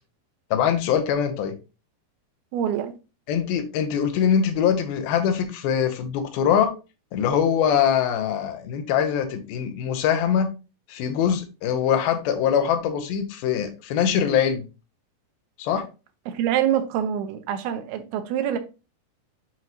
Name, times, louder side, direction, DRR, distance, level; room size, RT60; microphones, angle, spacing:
voice 1, 0.5-1.5 3.3-6.7 7.1-10.5 10.9-14.6 15.6-15.8, left 8 dB, 70° left, 2.6 m, -23 dB
voice 2, 2.5-2.9 16.3-18.6, right 10 dB, 80° right, 2.5 m, -25 dB
9.2 x 3.7 x 3.0 m
omnidirectional pair, 4.9 m